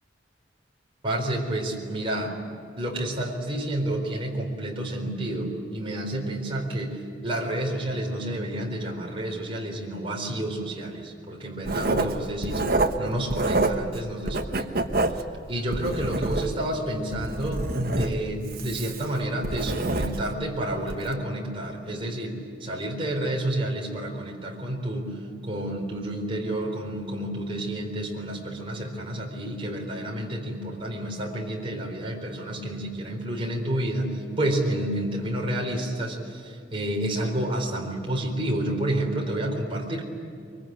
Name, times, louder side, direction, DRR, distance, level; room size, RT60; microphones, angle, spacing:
voice 1, 1.0-2.4 2.7-12.6 13.0-14.9 15.5-40.0, right 1 dB, 30° right, -1 dB, 4.2 m, -30 dB
Writing, 11.6-14.0 14.3-16.7 17.1-20.4 20.8-21.1, right 2 dB, 50° right, 1.3 m, -27 dB
24.0 x 24.0 x 9.1 m, 2.4 s
head